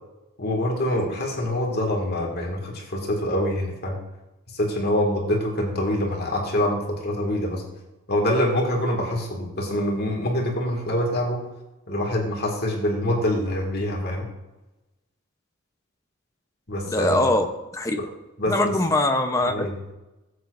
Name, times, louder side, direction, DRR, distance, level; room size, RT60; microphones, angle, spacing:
voice 1, 0.4-4.0 4.5-7.6 8.1-11.4 11.9-14.3 16.7-17.3 18.0-18.1 18.4-18.5 19.5-19.7, left 1 dB, 50° left, 0 dB, 2.1 m, -25 dB
voice 2, 16.9-17.5 17.7-18.0 18.5-19.9, left 2 dB, 15° left, 5 dB, 0.9 m, -22 dB
15.5 x 8.2 x 2.6 m, 1.0 s
head